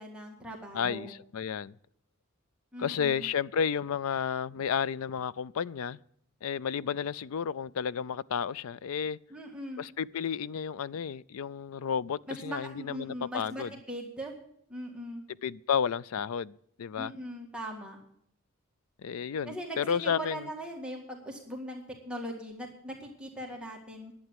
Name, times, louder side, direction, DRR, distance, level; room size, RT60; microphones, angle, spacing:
voice 1, 0.0-1.1 2.7-3.2 9.3-9.8 12.3-14.3 14.7-15.2 17.0-18.0 19.4-24.1, equal, 5° right, 1.9 m, -40 dB
voice 2, 0.7-1.7 2.8-6.0 6.4-9.2 9.8-13.7 15.4-17.1 19.0-20.4, left 7 dB, 70° left, 0.4 m, -32 dB
11.0 x 8.5 x 8.8 m
head